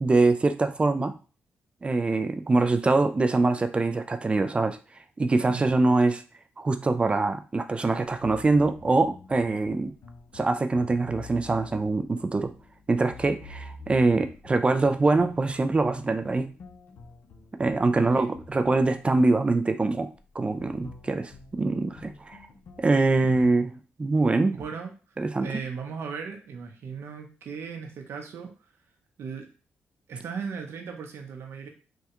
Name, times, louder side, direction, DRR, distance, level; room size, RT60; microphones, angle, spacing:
voice 1, 0.0-1.1 1.8-4.8 5.2-6.2 6.6-9.9 10.3-12.5 12.9-16.5 17.6-20.1 20.4-22.4 22.8-23.7 24.0-24.5 25.2-25.5, right 3 dB, 25° right, 8 dB, 0.3 m, -24 dB
voice 2, 5.5-5.8 17.9-18.3 23.2-23.5 24.5-24.9 25.4-28.5 29.2-29.5 30.1-31.7, right 6 dB, 70° right, 4 dB, 0.7 m, -37 dB
sound 1, 8.0-23.5, left 3 dB, 70° left, 0.6 m, -48 dB
3.3 x 2.2 x 2.9 m, 0.34 s
cardioid pair, 85°, 4 cm